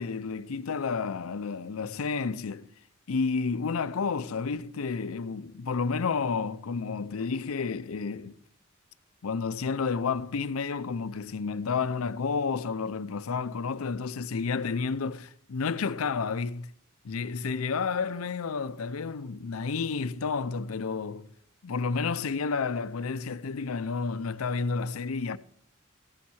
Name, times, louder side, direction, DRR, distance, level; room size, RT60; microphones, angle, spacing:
voice 1, 0.0-2.7 3.1-8.4 9.2-16.7 17.0-21.3 21.6-25.4, left 5 dB, 85° left, 0.5 m, -31 dB
15.0 x 7.2 x 6.2 m
head